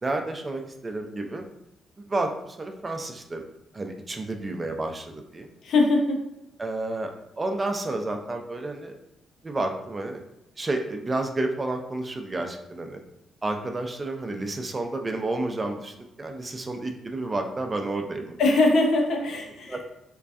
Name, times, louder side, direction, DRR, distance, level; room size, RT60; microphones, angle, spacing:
voice 1, 0.0-1.4 2.0-3.4 3.7-5.5 6.6-8.9 9.4-10.2 10.6-13.0 13.4-18.3 19.7-19.8, right 2 dB, 30° right, 4 dB, 0.4 m, -30 dB
voice 2, 5.6-6.2 18.4-19.9, left 2 dB, 60° left, 2 dB, 0.4 m, -22 dB
2.4 x 2.2 x 2.3 m, 0.84 s
figure-of-eight pair, 40°, 0 cm